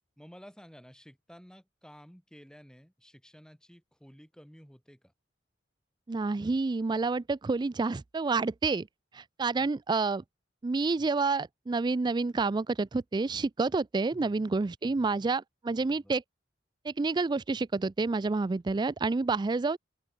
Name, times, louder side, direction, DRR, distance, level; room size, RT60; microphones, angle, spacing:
voice 1, 0.2-5.1 9.6-9.7 14.1-14.5 14.8-15.3 15.7-16.2, equal, 5° left, 7.3 m, -53 dB
voice 2, 6.1-8.9 9.1-10.2 10.6-16.2 16.8-19.8, right 3 dB, 25° right, 0.3 m, -29 dB
open air
head